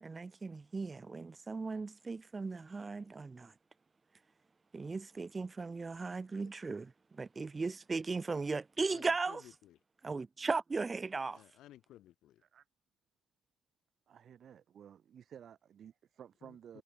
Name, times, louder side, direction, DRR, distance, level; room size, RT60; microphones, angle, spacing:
voice 1, 0.0-3.5 4.7-9.4 10.0-11.4, right 4 dB, 30° right, 0.7 m, -37 dB
voice 2, 8.9-9.8 11.3-12.4 16.4-16.8, left 13 dB, 85° left, 1.4 m, -57 dB
voice 3, 14.1-16.8, right 9 dB, 60° right, 2.6 m, -54 dB
cardioid pair, 90°, 0 cm